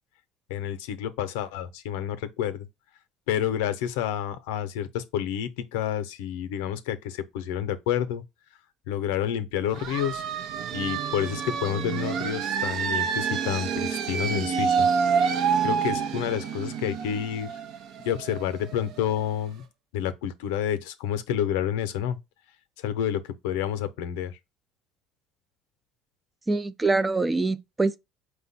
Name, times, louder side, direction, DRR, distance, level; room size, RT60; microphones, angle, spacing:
voice 1, 0.5-2.7 3.3-8.2 8.9-10.2 10.7-14.9 15.6-17.5 18.0-19.6 19.9-22.2 22.8-24.4, left 10 dB, 85° left, 0.6 m, -29 dB
sound 1, 9.7-19.2, right 6 dB, 65° right, 0.6 m, -28 dB
voice 2, 26.5-28.0, right 3 dB, 15° right, 0.4 m, -24 dB
4.9 x 2.2 x 4.0 m
supercardioid pair, 105°, 0 cm